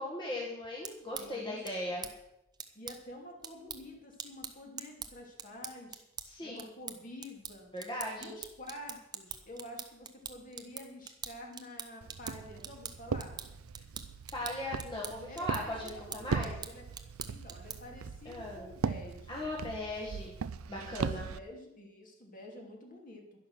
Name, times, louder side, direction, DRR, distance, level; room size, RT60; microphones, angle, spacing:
voice 1, 0.0-2.1 6.2-6.7 7.7-8.3 14.3-16.5 18.3-18.7 19.3-20.3 20.7-21.3, left 1 dB, 20° left, -3 dB, 1.8 m, -38 dB
sound 1, 0.6-18.0, right 7 dB, 20° right, 0.8 m, -46 dB
voice 2, 1.1-2.0 2.7-6.0 6.4-7.7 8.2-13.4 15.3-16.8 17.3-19.5 20.7-23.2, left 1 dB, 40° left, 1 dB, 2.8 m, -48 dB
Walk footsteps, 12.0-21.4, right 5 dB, 85° right, 0.5 m, -39 dB
11.0 x 11.0 x 6.3 m, 0.84 s
head